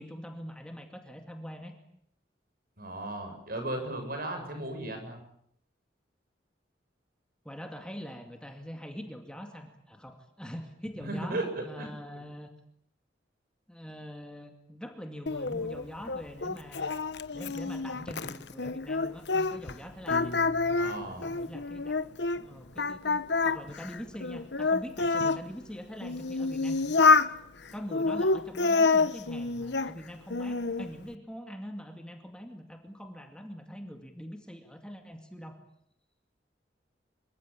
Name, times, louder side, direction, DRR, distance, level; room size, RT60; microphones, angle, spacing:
voice 1, 0.0-1.7 7.4-11.4 11.6-12.5 13.7-16.9 17.3-20.3 20.7-22.0 22.4-27.2 27.7-35.6, equal, 5° left, 4 dB, 2.3 m, -43 dB
voice 2, 2.8-5.2 11.0-11.9 20.8-21.3, right 1 dB, 55° right, 6 dB, 7.2 m, -35 dB
Singing, 15.3-19.8 20.1-22.4 22.8-25.4 26.0-27.3 27.9-29.9 30.3-30.9, left 4 dB, 70° left, 1.1 m, -27 dB
Piano, 20.1-22.3, left 1 dB, 50° left, 1.0 m, -45 dB
26.0 x 24.0 x 8.6 m, 0.73 s
head